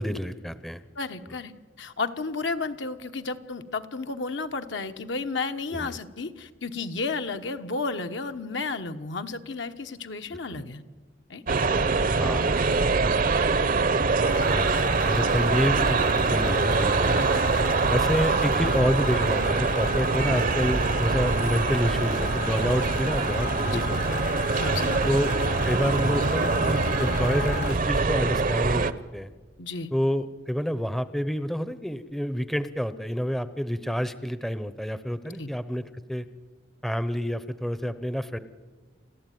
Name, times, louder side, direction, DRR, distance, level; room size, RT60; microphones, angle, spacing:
voice 1, 0.0-0.8 1.3-1.4 5.7-6.0 10.5-10.6 12.2-12.6 14.5-17.3 17.9-24.2 25.1-25.3 25.6-28.9 29.1-29.3 29.9-35.8 36.1-36.3 36.8-38.4, equal, ahead, 13 dB, 0.7 m, -28 dB
voice 2, 1.0-1.5 1.8-10.8 11.3-11.4 13.1-13.3 23.1-23.2 23.7-23.8 24.6-25.2 29.6-29.9 35.4-35.5, left 4 dB, 65° left, 7 dB, 1.1 m, -32 dB
sound 1, 11.5-28.9, right 4 dB, 45° right, 0.8 m, -24 dB
sound 2, 14.2-27.8, left 6 dB, 40° left, 0.8 m, -36 dB
29.5 x 13.0 x 9.2 m, 1.4 s
head